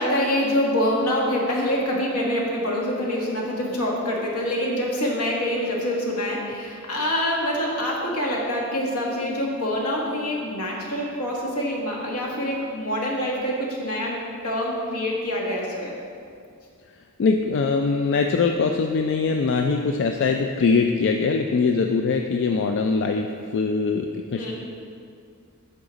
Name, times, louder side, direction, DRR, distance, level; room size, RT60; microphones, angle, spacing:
voice 1, 0.0-14.2 14.4-15.9 24.3-24.5, equal, 80° left, -2 dB, 1.5 m, -25 dB
voice 2, 17.2-23.3 23.5-24.5, left 4 dB, 55° left, 4 dB, 0.4 m, -22 dB
8.7 x 5.7 x 4.0 m, 2.3 s
head